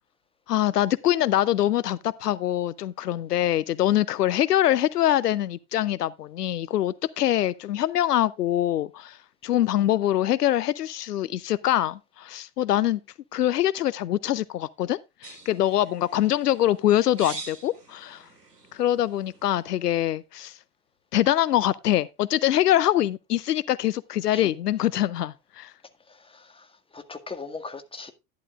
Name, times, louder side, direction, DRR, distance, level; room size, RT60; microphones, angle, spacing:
voice 1, 0.5-13.0 13.3-18.3 18.7-20.6 21.1-25.7, left 13 dB, 85° left, 0.6 m, -24 dB
sound 1, 15.2-19.7, right 3 dB, 85° right, 2.5 m, -44 dB
voice 2, 26.2-26.7 26.9-28.1, left 4 dB, 10° left, 1.7 m, -39 dB
11.5 x 11.0 x 2.4 m
figure-of-eight pair, 75°, 46 cm